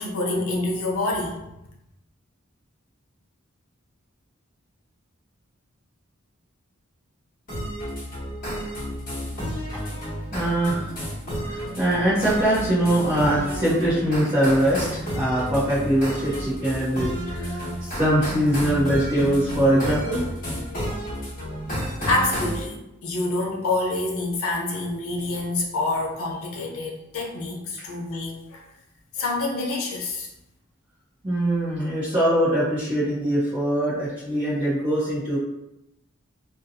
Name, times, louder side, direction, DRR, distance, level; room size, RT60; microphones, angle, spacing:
voice 1, 0.0-1.4 22.1-28.7 29.1-30.3, left 2 dB, 90° left, 0 dB, 0.6 m, -27 dB
sound 1, 7.5-22.6, equal, 40° left, 1.1 m, -31 dB
voice 2, 9.7-10.0 10.3-11.0 11.4-20.2 31.2-35.4, right 1 dB, 25° right, -12 dB, 0.8 m, -23 dB
2.7 x 2.2 x 2.7 m, 0.89 s
head